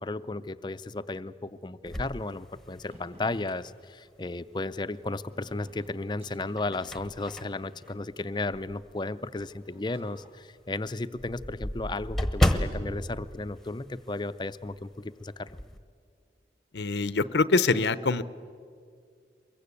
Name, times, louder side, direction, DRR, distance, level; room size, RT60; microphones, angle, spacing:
voice 1, 0.0-15.5, left 2 dB, 25° left, 13 dB, 0.5 m, -34 dB
sound 1, 1.8-3.2 3.7-3.8 5.3-5.8 6.3-8.9 9.4-9.5 9.9-10.0 10.3-10.4 10.6-14.4 14.6-14.9 15.2-15.8, left 1 dB, ahead, 1.1 m, -32 dB
sound 2, 2.8-10.3, equal, 35° right, 4.9 m, -56 dB
voice 2, 16.7-18.2, left 3 dB, 80° left, 15 dB, 0.7 m, -24 dB
23.0 x 22.5 x 8.4 m, 2.2 s
head